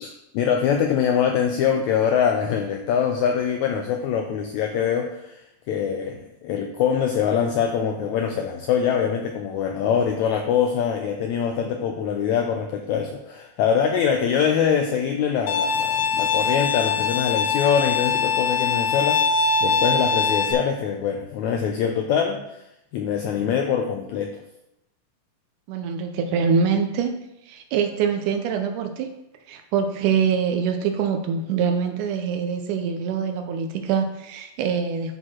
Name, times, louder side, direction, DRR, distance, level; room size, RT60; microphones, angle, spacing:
voice 1, 0.0-22.6 22.9-24.4, left 7 dB, 85° left, 4 dB, 1.6 m, -24 dB
Bowed string instrument, 15.5-20.5, left 5 dB, 65° left, 1.9 m, -22 dB
voice 2, 25.7-27.1 27.5-29.1 29.5-35.2, right 6 dB, 75° right, 6 dB, 2.0 m, -24 dB
11.0 x 4.6 x 4.4 m, 0.88 s
omnidirectional pair, 3.9 m